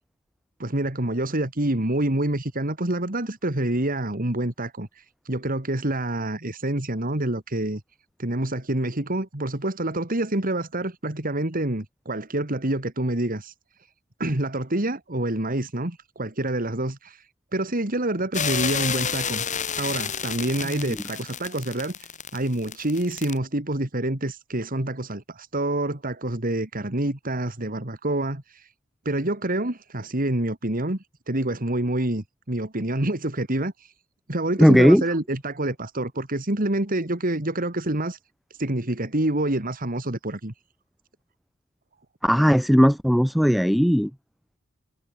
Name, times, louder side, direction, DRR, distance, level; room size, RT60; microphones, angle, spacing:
voice 1, 0.6-7.8 8.2-13.5 14.2-17.3 17.5-19.5 19.8-28.7 29.0-33.9 34.3-38.2 38.6-40.5, right 1 dB, 45° right, 2.7 m, -27 dB
sound 1, 18.3-23.4, left 7 dB, 40° left, 5.0 m, -30 dB
voice 2, 34.6-35.0 42.2-44.1, equal, ahead, 1.1 m, -17 dB
head